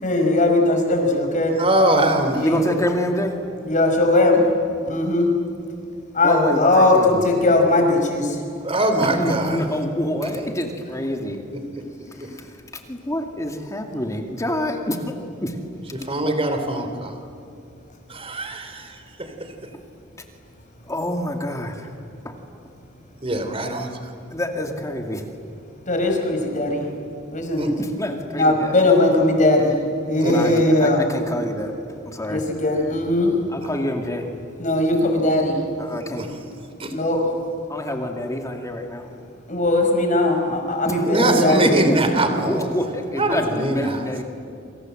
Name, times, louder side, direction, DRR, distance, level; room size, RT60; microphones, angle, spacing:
voice 1, 0.0-1.6 2.2-2.7 3.7-4.4 4.9-5.3 6.1-8.4 25.9-26.9 27.3-27.7 28.3-29.7 30.1-31.1 32.2-33.3 34.6-35.6 36.9-37.2 39.5-41.7, left 2 dB, 40° left, 3 dB, 5.6 m, -19 dB
voice 2, 1.6-2.5 8.6-9.6 11.5-11.6 16.1-17.1 18.1-18.9 23.2-23.9 27.6-27.7 30.2-30.6 36.0-36.3 36.8-36.9 41.1-42.7 43.2-44.0, right 1 dB, 30° right, 7 dB, 3.3 m, -22 dB
voice 3, 2.4-3.4 6.2-7.2 9.0-11.4 12.9-15.1 15.4-15.5 20.9-21.9 22.2-22.3 24.3-25.2 27.8-28.7 30.3-30.5 30.8-32.4 33.5-34.3 35.8-36.3 37.7-39.1 40.9-41.3 41.6-44.2, left 1 dB, 15° left, 3 dB, 2.4 m, -27 dB
28.5 x 26.5 x 7.8 m, 2.6 s
head